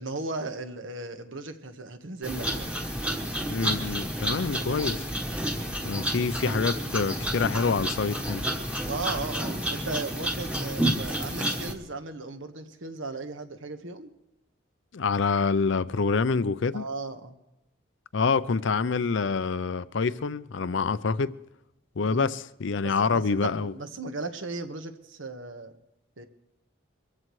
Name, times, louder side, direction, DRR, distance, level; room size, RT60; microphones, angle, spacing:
voice 1, 0.0-2.7 8.8-14.1 16.7-17.4 22.0-22.3 22.8-25.7 26.2-26.3, right 3 dB, 80° right, 1.3 m, -36 dB
sound 1, 2.2-11.7, right 1 dB, 5° right, 1.2 m, -30 dB
voice 2, 3.5-5.0 5.8-8.5 14.9-16.9 18.1-21.3 22.0-23.7, left 4 dB, 70° left, 0.5 m, -26 dB
23.0 x 15.0 x 3.2 m
head